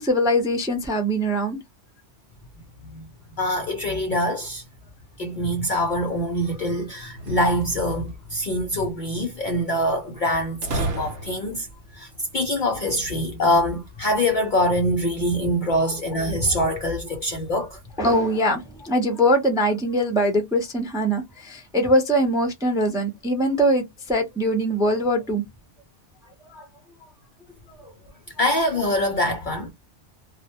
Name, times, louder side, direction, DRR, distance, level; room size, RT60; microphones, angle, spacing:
voice 1, 0.0-1.6 15.8-15.9 18.0-25.4 26.5-26.7 27.8-27.9, equal, 5° right, 0.4 m, -22 dB
voice 2, 3.4-4.6 5.2-11.7 11.9-17.8 28.4-29.7, left 1 dB, 60° left, 0.5 m, -24 dB
sound 1, 7.1-8.1 10.6-11.7, right 2 dB, 75° right, 0.9 m, -31 dB
2.2 x 2.0 x 2.8 m
omnidirectional pair, 1.2 m